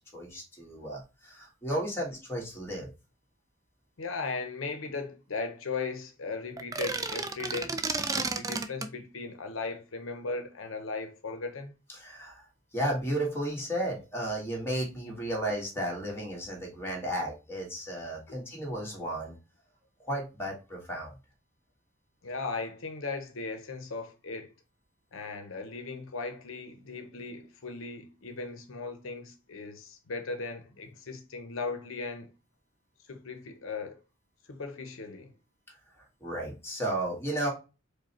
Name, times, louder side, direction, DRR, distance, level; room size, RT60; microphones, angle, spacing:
voice 1, 0.1-2.9 11.9-12.4 12.7-19.3 20.0-21.1 36.2-37.5, right 1 dB, 10° left, 1.6 m, -33 dB
voice 2, 4.0-7.8 8.1-11.7 18.3-18.4 22.2-24.5 25.1-32.3 33.1-34.0 34.4-35.3, left 4 dB, 80° left, 0.7 m, -37 dB
sound 1, 6.6-8.9, right 3 dB, 15° right, 0.3 m, -32 dB
5.0 x 2.2 x 4.2 m
head